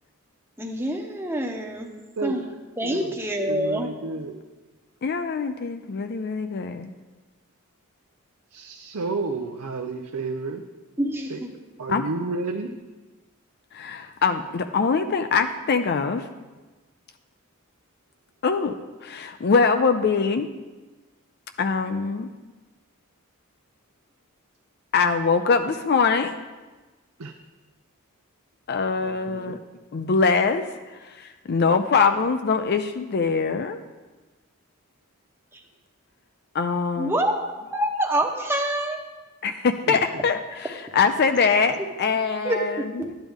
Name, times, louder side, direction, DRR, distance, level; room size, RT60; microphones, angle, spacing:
voice 1, 0.6-1.9 2.2-2.5 2.8-3.9 11.0-11.5 37.0-37.3 37.7-39.0 42.4-43.1, right 1 dB, 10° right, 2 dB, 0.9 m, -26 dB
voice 2, 2.8-3.2 3.5-4.4 8.5-10.6 11.3-11.4 11.8-12.7 27.2-27.3 29.0-29.5 39.9-40.0, right 3 dB, 85° right, 3 dB, 0.6 m, -31 dB
voice 3, 5.0-6.9 11.9-12.0 13.7-16.2 18.4-18.7 19.0-20.5 21.6-22.3 24.9-26.3 28.7-29.6 29.9-30.7 31.0-33.8 36.5-37.1 39.4-43.2, left 5 dB, 50° left, 7 dB, 0.4 m, -23 dB
11.5 x 8.9 x 3.6 m, 1.2 s
head